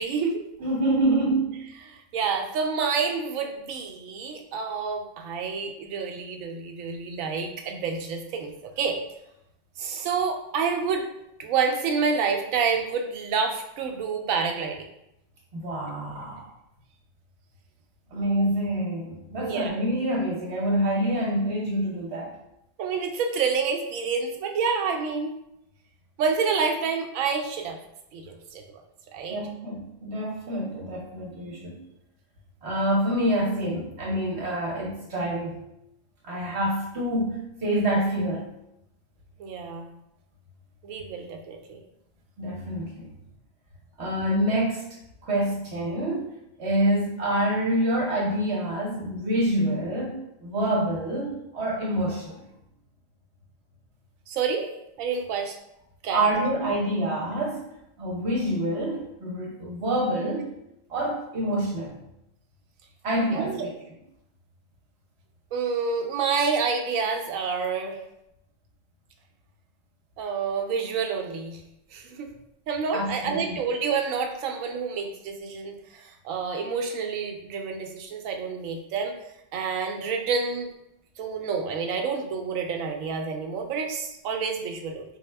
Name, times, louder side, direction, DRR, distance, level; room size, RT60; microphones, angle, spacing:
voice 1, 0.0-0.4 1.9-8.5 8.8-9.0 9.8-11.1 11.4-14.9 19.4-19.7 22.8-25.3 26.2-27.8 28.1-28.6 29.1-29.4 39.4-39.9 40.8-41.8 54.3-55.6 56.0-56.2 63.3-63.7 65.5-68.0 70.2-71.6 71.9-72.3 72.7-79.2 79.5-80.7 81.2-85.0, right 5 dB, 80° right, 3 dB, 1.0 m, -28 dB
voice 2, 0.6-1.7 15.5-16.5 18.1-22.3 29.3-31.9 32.6-35.6 36.2-38.4 42.4-43.1 44.0-44.8 45.2-46.3 46.6-52.4 56.1-57.7 58.0-60.5 60.9-61.9 63.0-63.7 72.9-73.6, right 1 dB, 60° right, -4 dB, 1.0 m, -27 dB
4.0 x 2.1 x 3.3 m, 0.82 s
omnidirectional pair, 1.4 m